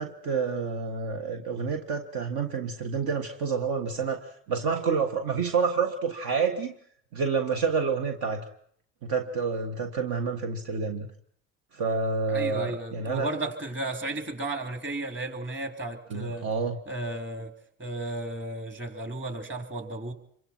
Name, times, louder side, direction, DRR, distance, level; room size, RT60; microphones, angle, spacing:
voice 1, 0.0-6.7 7.1-8.5 9.0-11.1 11.7-13.3 16.1-16.8, right 5 dB, 65° right, 4 dB, 1.7 m, -28 dB
voice 2, 12.3-16.5 16.9-17.5 17.8-20.1, right 2 dB, 30° right, 5 dB, 3.8 m, -34 dB
26.5 x 24.0 x 4.5 m, 0.65 s
hypercardioid pair, 55°, 39 cm